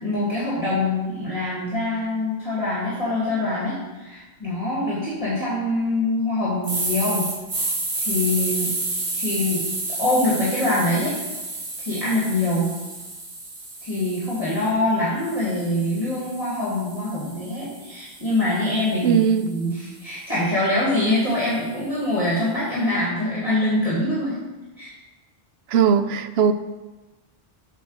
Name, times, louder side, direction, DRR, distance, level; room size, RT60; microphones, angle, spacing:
voice 1, 0.0-7.3 7.6-7.7 8.1-8.7 9.2-9.6 10.0-11.1 11.8-12.7 13.8-24.4 24.8-24.9, left 1 dB, 35° left, -8 dB, 2.2 m, -24 dB
sound 1, 6.6-14.7 15.2-19.4, right 2 dB, 55° right, 1.6 m, -31 dB
voice 2, 19.0-19.5 25.7-26.5, right 7 dB, 80° right, 11 dB, 0.8 m, -19 dB
8.1 x 4.3 x 6.4 m, 1.1 s
omnidirectional pair, 1.0 m